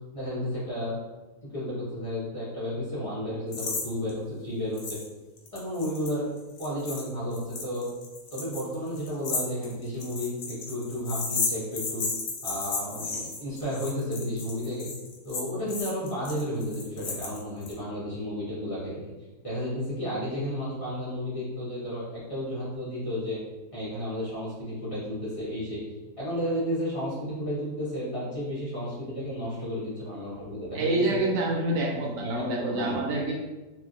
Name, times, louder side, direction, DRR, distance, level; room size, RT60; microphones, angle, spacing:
voice 1, 0.1-1.0 1.4-5.0 5.5-6.2 6.6-7.8 8.3-12.1 12.4-14.9 15.2-19.0 19.4-23.4 23.7-25.8 26.2-31.2 31.9-33.0, equal, 25° left, -11 dB, 0.9 m, -32 dB
sound 1, 3.5-3.8 4.1-4.2 4.8-5.1 5.4-17.7, left 4 dB, 70° left, 1.0 m, -34 dB
voice 2, 30.7-33.3, right 2 dB, 70° right, -1 dB, 1.1 m, -27 dB
2.7 x 2.6 x 2.5 m, 1.1 s
omnidirectional pair, 1.7 m